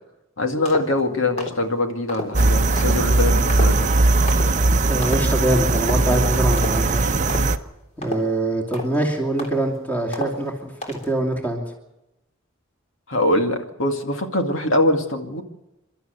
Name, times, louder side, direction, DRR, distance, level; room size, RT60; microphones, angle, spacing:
voice 1, 0.4-3.9 13.1-15.4, left 1 dB, 70° left, 4 dB, 2.2 m, -23 dB
sound 1, 0.7-1.0 1.4-1.6 2.1-2.3 2.8-3.0 3.5-3.9 4.3-4.5 5.0-5.4 5.8-6.1 6.5-6.9 7.3-7.6 8.0-8.4 8.7-9.0 9.4-9.8 10.1-10.5 10.8-11.1, left 1 dB, 35° left, 3.5 m, -31 dB
sound 2, 2.3-7.6, right 2 dB, 35° right, 0.8 m, -19 dB
voice 2, 4.8-7.2 8.0-11.6, right 1 dB, 10° left, 1 dB, 2.8 m, -24 dB
29.0 x 12.5 x 8.1 m, 0.95 s
head